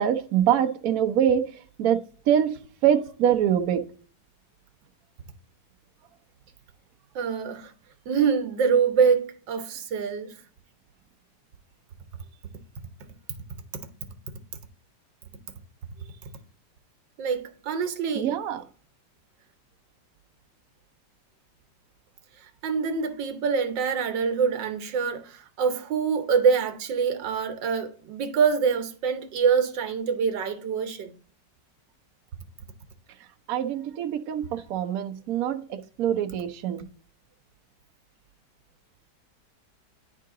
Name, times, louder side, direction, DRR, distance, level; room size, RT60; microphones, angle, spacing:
voice 1, 0.0-1.5 1.8-3.9 18.2-18.6 33.5-36.8, right 9 dB, 65° right, 1.0 m, -24 dB
voice 2, 7.1-7.7 8.1-10.4 17.2-18.3 22.6-31.2, right 6 dB, 85° right, 1.6 m, -25 dB
10.0 x 3.8 x 3.7 m
omnidirectional pair, 1.9 m